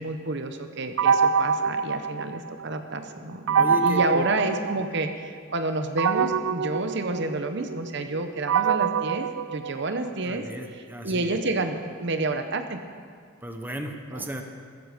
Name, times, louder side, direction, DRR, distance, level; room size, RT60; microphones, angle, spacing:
voice 1, 0.0-12.8 14.1-14.3, right 2 dB, 60° right, 7 dB, 0.9 m, -29 dB
sound 1, 1.0-2.8 3.5-5.3 6.0-10.2, right 6 dB, 90° right, 0.4 m, -25 dB
voice 2, 3.5-4.3 10.2-11.4 13.4-14.4, equal, 10° right, 4 dB, 1.0 m, -34 dB
15.0 x 14.5 x 5.1 m, 2.1 s
head